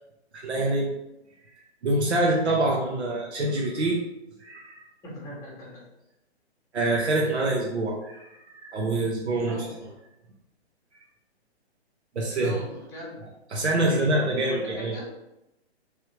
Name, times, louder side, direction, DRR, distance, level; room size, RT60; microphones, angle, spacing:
voice 1, 0.3-0.9 1.8-4.0 4.4-4.9 6.7-9.6 12.1-12.5 13.5-15.0, right 2 dB, 75° right, -2 dB, 0.8 m, -25 dB
voice 2, 5.0-5.8 9.4-9.9 12.3-13.2 13.6-15.1, left 1 dB, 10° left, -5 dB, 0.9 m, -39 dB
3.2 x 2.7 x 3.2 m, 0.90 s
figure-of-eight pair, 135°, 33 cm